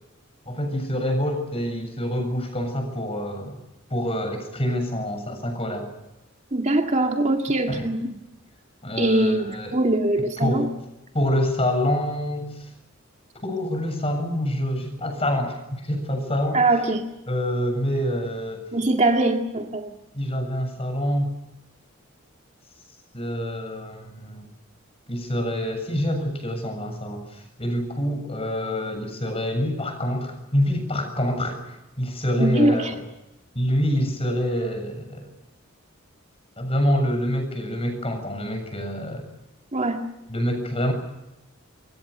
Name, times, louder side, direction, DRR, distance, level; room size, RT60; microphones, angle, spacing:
voice 1, 0.5-3.6 3.9-5.9 7.7-7.9 8.8-9.8 10.4-10.6 11.1-12.7 13.4-16.6 17.3-18.6 20.1-21.3 23.1-24.5 25.1-33.0 33.5-35.3 36.6-39.3 40.3-40.9, equal, 30° left, 6 dB, 7.2 m, -26 dB
voice 2, 6.5-8.2 9.0-10.6 16.5-17.0 18.7-19.9 32.4-32.9 39.7-40.0, right 2 dB, 35° right, 3 dB, 2.1 m, -22 dB
26.0 x 23.0 x 6.8 m, 0.93 s
head